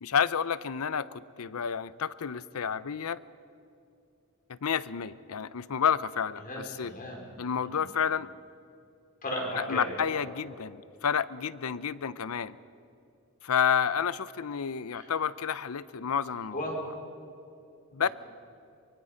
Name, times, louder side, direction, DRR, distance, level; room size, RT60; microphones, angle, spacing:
voice 1, 0.0-3.2 4.5-6.9 7.4-8.3 9.6-12.6 13.4-16.8 17.9-18.1, left 7 dB, 70° left, 17 dB, 0.6 m, -30 dB
voice 2, 6.4-7.2 7.6-7.9 9.2-10.4 14.9-15.1 16.5-16.8, equal, 40° left, -1 dB, 4.7 m, -36 dB
24.0 x 23.0 x 5.2 m, 2.7 s
head